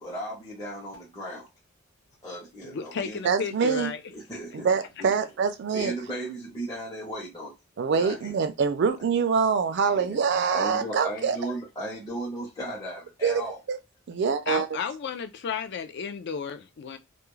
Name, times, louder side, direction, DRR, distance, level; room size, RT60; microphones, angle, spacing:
voice 1, 0.0-1.5 2.2-3.2 4.1-4.7 5.0-5.1 5.7-7.5 7.9-8.3 9.9-10.2 10.5-13.6, right 1 dB, 15° left, 0.7 m, -36 dB
voice 2, 2.6-4.0 14.5-17.0, left 6 dB, 50° left, 0.3 m, -33 dB
voice 3, 3.2-3.9 4.5-5.9 7.8-11.4 13.2-13.4 13.7-13.8 14.1-14.7, right 6 dB, 50° right, 0.3 m, -25 dB
2.3 x 2.1 x 3.0 m
head